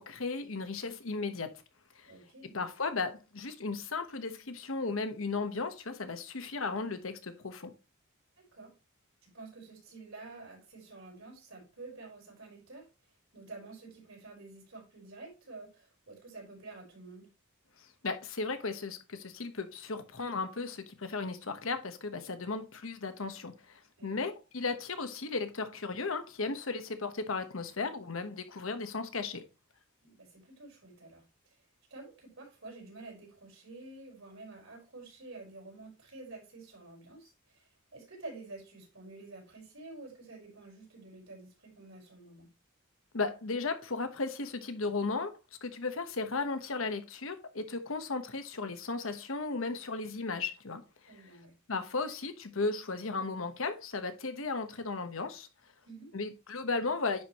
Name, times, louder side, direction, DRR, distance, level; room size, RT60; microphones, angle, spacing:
voice 1, 0.0-1.6 1.9-2.1 2.5-7.7 17.8-29.4 43.1-45.3 45.6-50.8 51.7-55.5 56.1-57.2, left 3 dB, 65° left, 1.1 m, -35 dB
voice 2, 2.0-2.6 8.4-8.7 9.2-12.9 13.3-17.3 24.0-24.3 30.0-31.6 31.9-42.5 51.1-51.6 55.8-56.1, right 3 dB, 70° right, 4.5 m, -49 dB
10.0 x 4.8 x 3.0 m
head